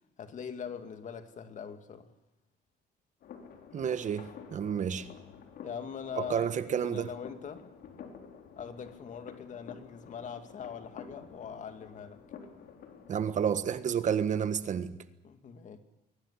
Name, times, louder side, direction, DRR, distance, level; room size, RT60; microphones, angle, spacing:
voice 1, 0.2-2.1 5.6-7.6 8.6-12.2 15.2-15.8, left 7 dB, 45° left, 2.4 m, -42 dB
sound 1, 3.2-13.3, left 7 dB, 65° left, 4.1 m, -50 dB
voice 2, 3.7-5.1 6.2-7.1 13.1-14.9, right 8 dB, 45° right, 1.4 m, -30 dB
22.5 x 17.5 x 9.7 m
cardioid pair, 110°, 17 cm